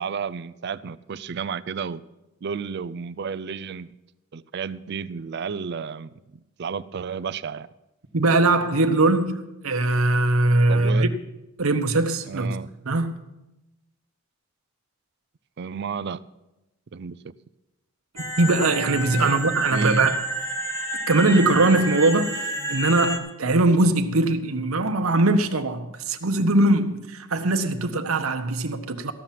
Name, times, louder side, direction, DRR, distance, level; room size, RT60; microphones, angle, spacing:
voice 1, 0.0-2.0 2.4-3.9 4.3-6.1 6.6-7.7 10.7-11.1 12.3-12.7 15.6-16.2 16.9-17.3 19.2-19.4 19.7-20.1, right 6 dB, 50° right, 0.4 m, -32 dB
voice 2, 8.1-11.1 11.6-12.5 12.9-13.1 18.1-20.2 21.1-29.1, right 2 dB, 80° right, 1.0 m, -21 dB
sound 1, 18.2-23.2, right 1 dB, 15° left, 1.5 m, -30 dB
14.5 x 5.8 x 9.1 m
head